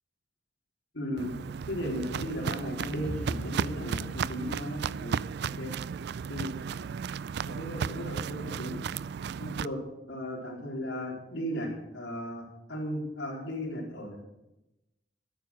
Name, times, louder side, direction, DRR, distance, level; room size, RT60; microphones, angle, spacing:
voice 1, 0.9-1.3 1.7-5.7 6.3-6.5 7.4-8.8 9.4-9.8 10.1-14.2, equal, 85° left, -1 dB, 4.0 m, -36 dB
Walk footsteps, 1.2-9.7, right 6 dB, 60° right, 0.3 m, -34 dB
sound 1, 3.0-6.2, equal, 10° left, 2.6 m, -42 dB
12.5 x 9.5 x 6.0 m, 0.93 s
head